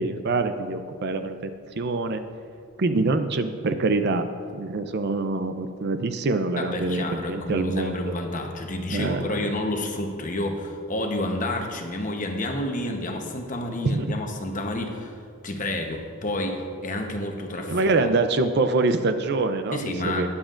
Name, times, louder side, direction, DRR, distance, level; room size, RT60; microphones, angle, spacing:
voice 1, 0.0-2.2 2.8-4.3 4.5-8.1 8.9-9.3 13.8-14.1 17.7-20.3, right 3 dB, 50° right, 9 dB, 0.5 m, -25 dB
voice 2, 6.6-15.2 15.4-17.9 19.7-20.3, left 1 dB, 35° left, 3 dB, 0.9 m, -29 dB
20.5 x 7.3 x 2.5 m, 2.3 s
head